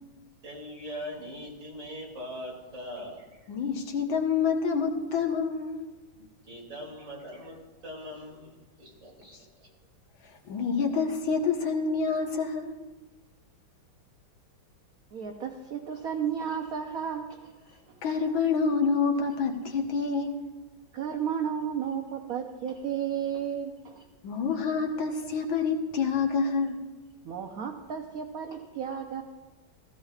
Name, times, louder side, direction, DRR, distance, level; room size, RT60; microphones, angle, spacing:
voice 1, 0.4-3.4 6.1-9.7, equal, 40° right, -1 dB, 3.1 m, -41 dB
voice 2, 3.5-5.8 10.5-12.8 18.0-20.4 24.2-26.8, left 5 dB, 80° left, 3 dB, 2.0 m, -27 dB
voice 3, 15.1-17.8 20.9-24.1 27.2-29.2, right 8 dB, 60° right, 4 dB, 1.0 m, -33 dB
15.5 x 15.5 x 2.4 m, 1.3 s
omnidirectional pair, 2.1 m